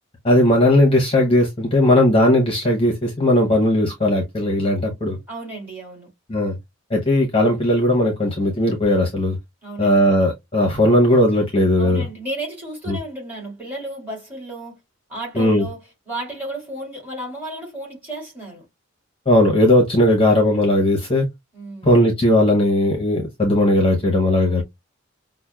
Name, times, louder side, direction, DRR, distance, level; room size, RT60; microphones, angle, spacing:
voice 1, 0.2-5.2 6.3-6.6 6.9-9.4 9.8-12.0 12.9-13.0 15.3-15.7 19.3-21.3 21.8-24.6, left 1 dB, 25° left, 0.8 m, -17 dB
voice 2, 5.3-6.1 9.6-10.1 11.8-14.8 15.1-18.7 21.5-21.9 24.5-24.6, right 1 dB, 10° right, 2.3 m, -33 dB
5.8 x 2.1 x 2.2 m
head